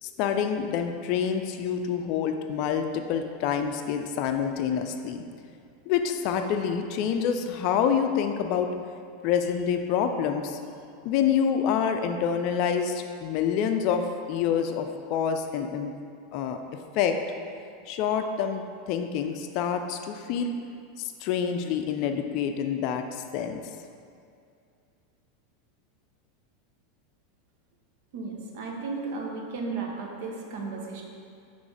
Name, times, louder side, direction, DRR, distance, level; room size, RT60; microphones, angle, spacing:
voice 1, 0.0-5.2 5.9-8.7 9.2-10.6 11.0-15.9 16.3-16.6 16.9-17.1 17.9-20.5 21.0-23.6, left 7 dB, 50° left, 6 dB, 0.4 m, -27 dB
voice 2, 28.1-31.0, right 4 dB, 60° right, 0 dB, 0.9 m, -34 dB
6.0 x 3.3 x 5.0 m, 2.4 s
figure-of-eight pair, 85°, 0 cm